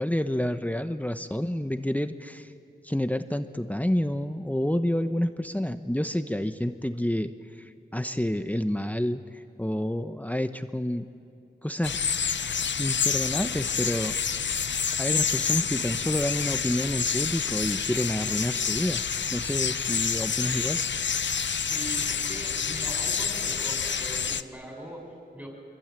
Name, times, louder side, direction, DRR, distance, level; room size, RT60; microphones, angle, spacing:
voice 1, 0.0-2.5 2.8-11.1 11.6-12.1 12.8-14.2 15.0-19.0 19.3-20.8, left 1 dB, 10° left, 9 dB, 1.0 m, -29 dB
sound 1, 11.8-24.4, left 6 dB, 85° left, 0.6 m, -28 dB
voice 2, 21.7-25.5, right 1 dB, 10° right, -2 dB, 6.7 m, -41 dB
24.5 x 24.0 x 9.0 m, 2.5 s
wide cardioid pair, 50°, 18 cm